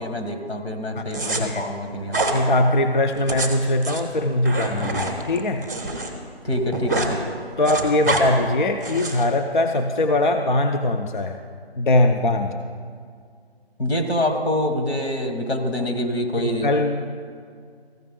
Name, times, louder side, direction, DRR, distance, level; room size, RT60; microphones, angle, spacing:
voice 1, 0.0-2.2 6.4-7.2 13.8-16.7, left 1 dB, 80° left, 4 dB, 1.6 m, -25 dB
voice 2, 1.0-1.6 2.3-5.6 7.6-11.4 11.8-12.6 16.4-17.1, left 1 dB, 50° left, 5 dB, 0.5 m, -21 dB
sound 1, 1.1-1.4 2.1-2.4 3.1-6.1 6.4-7.1 7.4-8.2 8.8-9.3, right 2 dB, 15° right, 0.6 m, -26 dB
14.5 x 5.5 x 3.7 m, 2.1 s
figure-of-eight pair, 165°, 32 cm